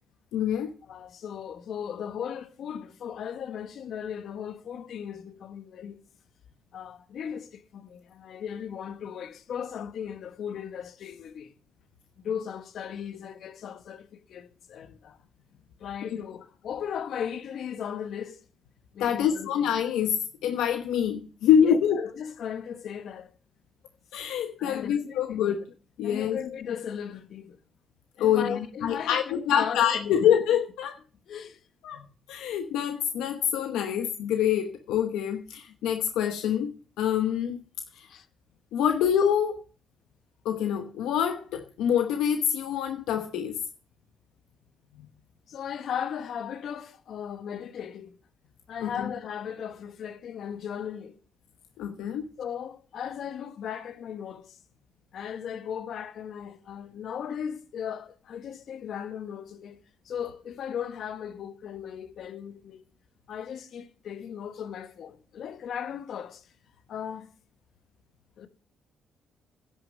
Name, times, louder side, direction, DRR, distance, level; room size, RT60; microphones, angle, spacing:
voice 1, 0.3-0.7 19.0-20.2 20.4-22.0 24.1-25.6 26.0-26.4 28.2-31.0 31.8-36.7 37.0-37.6 38.0-38.1 38.7-39.6 40.4-43.6 45.0-45.1 48.8-49.1 51.8-52.2, left 9 dB, 85° left, 0.9 m, -26 dB
voice 2, 0.8-6.0 6.7-11.5 12.2-15.2 15.8-18.4 18.9-19.7 21.5-23.3 24.6-25.6 26.0-27.6 28.2-30.3 31.3-31.6 38.1-38.3 45.5-48.2 48.7-51.1 52.4-54.6 55.1-59.8 60.0-62.8 63.3-66.5 66.9-67.3 68.4-68.5, left 8 dB, 70° left, 1.3 m, -37 dB
10.5 x 6.5 x 7.6 m
cardioid pair, 80°, 0 cm